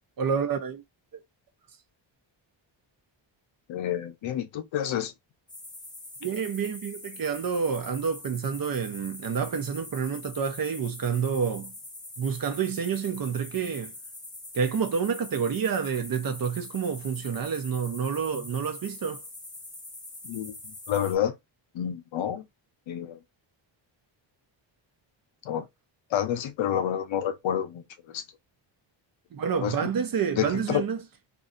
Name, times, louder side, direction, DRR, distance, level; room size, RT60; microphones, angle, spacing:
voice 1, 0.2-0.8 6.2-11.7 12.2-13.9 14.5-19.2 29.3-31.0, right 6 dB, 50° right, 0.7 m, -28 dB
voice 2, 3.7-5.1 20.2-21.3 21.7-22.4 22.9-23.2 25.5-25.6 26.1-28.2 29.6-29.8 30.4-30.8, left 10 dB, 75° left, 0.8 m, -29 dB
sound 1, 5.5-21.2, left 2 dB, 10° left, 0.5 m, -44 dB
2.7 x 2.6 x 2.5 m
wide cardioid pair, 130°, 46 cm